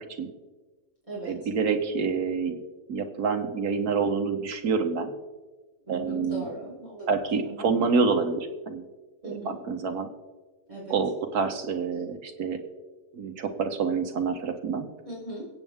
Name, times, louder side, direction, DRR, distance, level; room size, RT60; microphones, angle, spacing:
voice 1, 1.3-2.6 2.9-5.1 5.9-6.5 7.1-8.8 9.2-10.1 10.9-12.6 13.1-14.9, right 5 dB, 85° right, 5 dB, 1.7 m, -27 dB
voice 2, 5.8-7.1 7.4-7.6 9.2-9.5 10.7-10.9 15.0-15.5, right 1 dB, 20° right, -7 dB, 4.3 m, -38 dB
23.5 x 8.3 x 3.6 m, 1.3 s
omnidirectional pair, 1.6 m